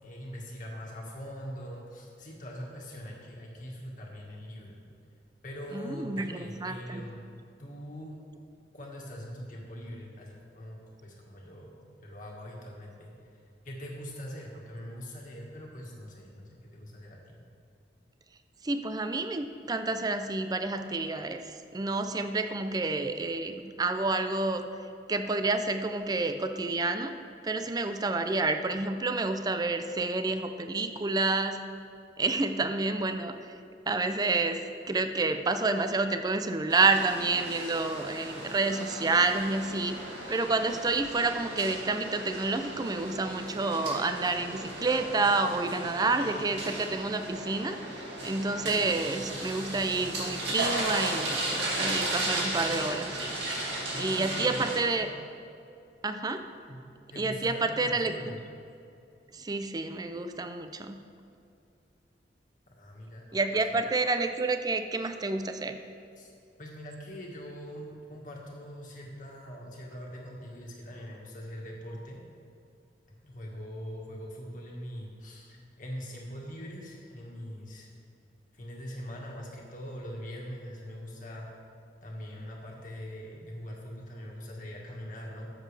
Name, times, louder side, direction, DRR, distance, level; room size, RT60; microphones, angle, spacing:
voice 1, 0.0-4.8 5.4-7.2 7.6-8.2 8.7-11.7 12.0-13.1 13.6-17.4 53.9-55.2 56.7-56.8 57.1-58.4 62.8-63.5 66.2-66.3 66.6-72.2 73.2-77.9 78.5-81.5 82.0-85.5, equal, 45° left, -2 dB, 1.7 m, -42 dB
voice 2, 5.7-7.1 18.6-24.6 25.1-27.1 27.4-31.6 32.2-33.5 33.9-40.0 40.3-47.8 48.2-53.2 54.0-55.1 56.0-56.5 57.2-58.4 59.3-61.0 63.3-65.8, right 3 dB, 20° right, 8 dB, 0.4 m, -29 dB
washington airspace mcdonalds, 36.7-54.8, right 1 dB, 85° right, 2.2 m, -35 dB
12.5 x 7.4 x 3.3 m, 2.6 s
head